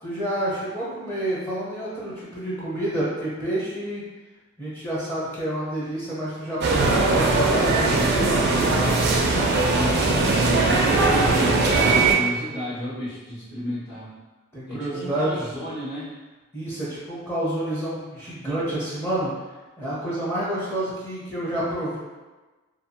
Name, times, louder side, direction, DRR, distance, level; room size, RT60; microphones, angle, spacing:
voice 1, 0.0-4.0 4.6-8.7 14.5-15.4 16.5-19.3 19.8-22.0, right 1 dB, 10° left, -9 dB, 0.6 m, -29 dB
sound 1, 6.6-12.1, right 3 dB, 50° right, 0.3 m, -20 dB
voice 2, 9.7-11.6 12.1-14.1 14.7-16.2, equal, 55° left, -13 dB, 1.1 m, -32 dB
2.6 x 2.2 x 2.7 m, 1.2 s
head